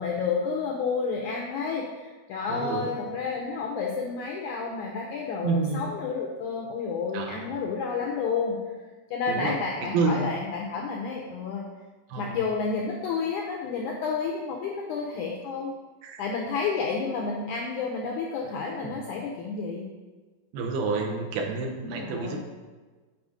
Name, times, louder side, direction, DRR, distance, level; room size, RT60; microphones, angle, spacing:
voice 1, 0.0-8.6 9.1-11.6 12.2-15.7 16.2-19.9 21.8-22.4, left 5 dB, 80° left, 0 dB, 1.8 m, -30 dB
voice 2, 2.5-2.9 5.4-5.9 7.1-7.5 9.3-9.6 9.9-10.3 12.1-12.4 16.0-16.2 18.8-19.0 20.5-22.4, right 4 dB, 80° right, 1 dB, 2.7 m, -29 dB
7.6 x 4.3 x 4.9 m, 1.3 s
omnidirectional pair, 4.3 m